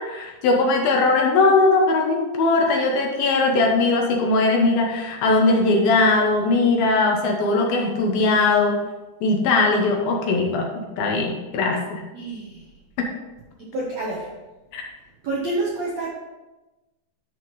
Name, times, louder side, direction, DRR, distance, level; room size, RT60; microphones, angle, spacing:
voice 1, 0.0-8.8 9.2-12.0 13.0-13.1 14.7-14.8, left 3 dB, 70° left, 1 dB, 2.6 m, -20 dB
voice 2, 12.1-12.6 13.7-14.3 15.2-16.1, right 2 dB, 75° right, -4 dB, 1.6 m, -27 dB
10.5 x 6.4 x 3.1 m, 1.1 s
omnidirectional pair, 4.8 m